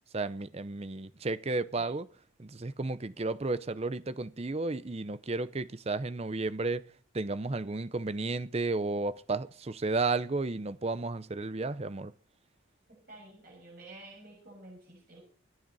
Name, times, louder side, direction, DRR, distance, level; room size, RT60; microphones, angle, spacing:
voice 1, 0.1-2.1 2.4-6.8 7.1-12.1, right 3 dB, 30° right, 0.6 m, -33 dB
voice 2, 13.1-15.2, right 2 dB, 45° right, 6.6 m, -50 dB
25.0 x 9.2 x 4.1 m
head